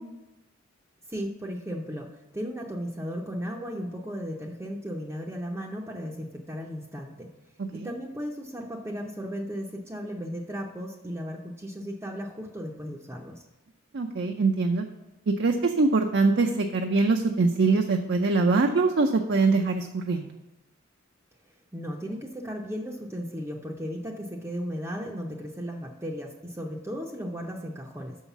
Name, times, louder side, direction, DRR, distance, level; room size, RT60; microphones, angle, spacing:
voice 1, 1.1-7.3 7.7-13.4 21.7-28.2, equal, 15° right, 0 dB, 0.6 m, -35 dB
voice 2, 13.9-14.9 15.3-20.3, right 3 dB, 55° right, 4 dB, 0.5 m, -23 dB
6.3 x 5.6 x 7.0 m, 1.1 s
head